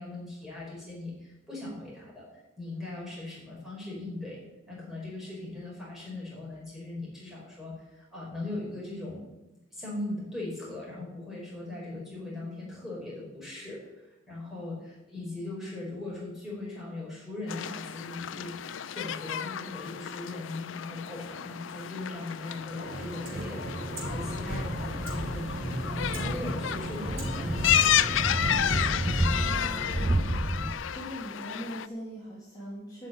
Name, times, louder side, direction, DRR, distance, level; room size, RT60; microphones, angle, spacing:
voice 1, 0.0-2.2 2.6-4.4 4.7-9.2 9.7-18.6 18.8-23.7 24.0-25.5 25.8-28.2, left 2 dB, ahead, -5 dB, 5.0 m, -39 dB
sound 1, 17.5-31.9, left 10 dB, 90° left, 0.5 m, -32 dB
sound 2, 22.5-30.8, right 1 dB, 55° right, 3.0 m, -36 dB
sound 3, 24.1-30.7, right 1 dB, 25° right, 0.9 m, -32 dB
voice 2, 29.3-30.5 30.9-33.1, equal, 20° left, -8 dB, 3.3 m, -41 dB
12.0 x 6.0 x 9.0 m, 1.0 s
head